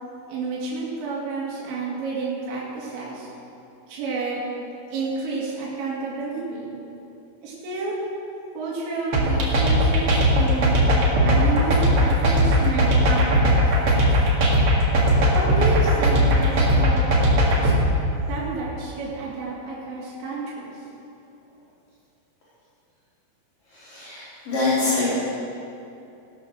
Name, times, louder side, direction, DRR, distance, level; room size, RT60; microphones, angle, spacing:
voice 1, 0.3-3.3 3.9-4.4 4.9-6.8 7.4-8.0 8.5-10.8 11.2-13.6 13.8-14.2 15.2-17.2 17.6-17.7 18.3-20.7, right 4 dB, 80° right, -6 dB, 4.6 m, -30 dB
sound 1, 9.1-17.8, equal, 50° right, 1.7 m, -18 dB
voice 2, 23.7-25.1, left 3 dB, 50° left, -12 dB, 5.0 m, -25 dB
17.0 x 8.8 x 6.4 m, 2.7 s
omnidirectional pair, 5.2 m